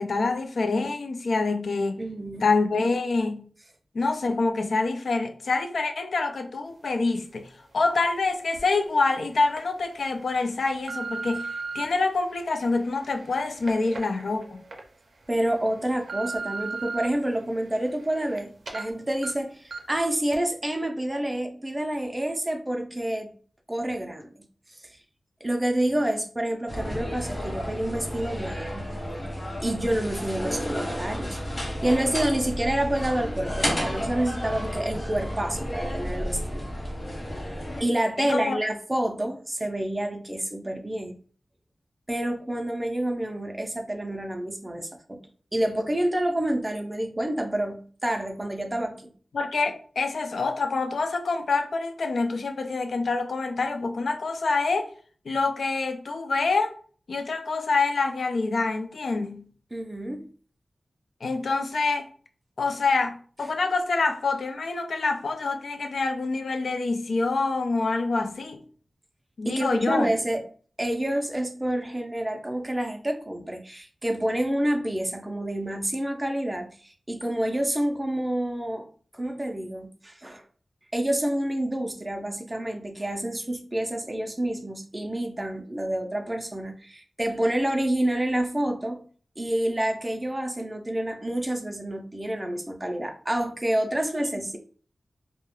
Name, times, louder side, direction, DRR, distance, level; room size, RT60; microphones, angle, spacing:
voice 1, 0.0-2.0 2.4-3.5 3.9-11.5 11.7-14.6 38.2-38.6 49.3-54.9 55.3-56.7 57.1-59.5 61.2-62.1 62.6-68.6 69.4-70.1, left 3 dB, 90° left, 0.3 m, -26 dB
voice 2, 2.0-2.4 15.3-23.3 23.7-24.3 24.8-25.0 25.4-28.9 29.6-36.7 37.8-41.2 42.1-45.2 45.5-49.1 59.7-60.3 69.4-70.4 70.8-78.9 79.1-80.4 80.9-89.0 89.4-94.6, right 1 dB, 20° right, 0.4 m, -28 dB
sound 1, 8.6-8.7 9.3-9.6 10.2-11.8 12.5-14.8 15.2-15.3 15.8-17.1 17.5-18.4 18.7-18.8 19.2-19.3 19.7-20.0 20.3-20.4, right 4 dB, 90° right, 0.4 m, -36 dB
sound 2, 26.7-37.8, equal, 45° left, 0.9 m, -32 dB
2.2 x 2.0 x 2.9 m
wide cardioid pair, 95°, 0 cm